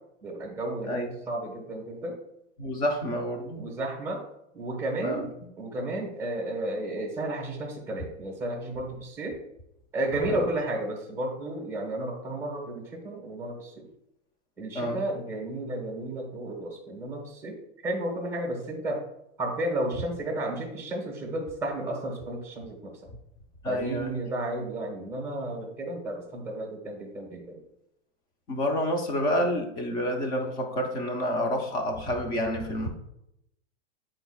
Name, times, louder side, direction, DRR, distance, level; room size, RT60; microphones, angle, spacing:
voice 1, 0.2-2.2 3.6-4.2 4.5-5.3 5.6-9.4 9.9-13.9 14.6-17.6 17.8-19.1 19.4-22.9 23.6-27.6, right 1 dB, 5° right, 1 dB, 1.3 m, -32 dB
voice 2, 2.6-3.7 5.0-5.3 10.3-10.5 14.7-15.0 23.6-24.2 28.5-32.9, equal, 10° left, 4 dB, 0.4 m, -29 dB
10.0 x 4.3 x 2.3 m, 0.82 s
supercardioid pair, 160°, 35 cm